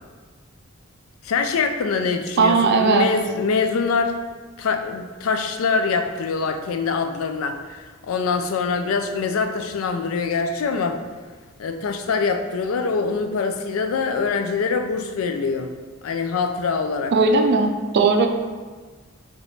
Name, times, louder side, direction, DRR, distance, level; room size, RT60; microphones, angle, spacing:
voice 1, 1.2-4.2 4.6-11.0 11.6-15.7 16.0-17.1, left 4 dB, 75° left, 7 dB, 0.4 m, -24 dB
voice 2, 2.4-3.1 17.1-18.3, right 4 dB, 55° right, 5 dB, 0.4 m, -17 dB
3.5 x 2.9 x 3.9 m, 1.4 s
head